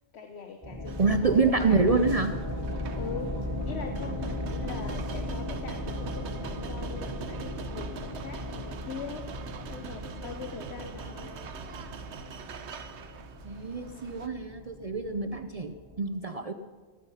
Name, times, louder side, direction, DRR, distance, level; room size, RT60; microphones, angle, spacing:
voice 1, 0.1-2.2 2.9-11.6, left 5 dB, 65° left, 6 dB, 1.1 m, -42 dB
sound 1, 0.6-16.0, left 1 dB, 20° left, 3.1 m, -37 dB
sound 2, 0.9-14.3, right 6 dB, 70° right, 1.1 m, -43 dB
voice 2, 1.0-2.3 13.4-16.5, right 3 dB, 45° right, 9 dB, 0.5 m, -26 dB
16.0 x 14.0 x 5.6 m, 1.5 s
omnidirectional pair, 1.2 m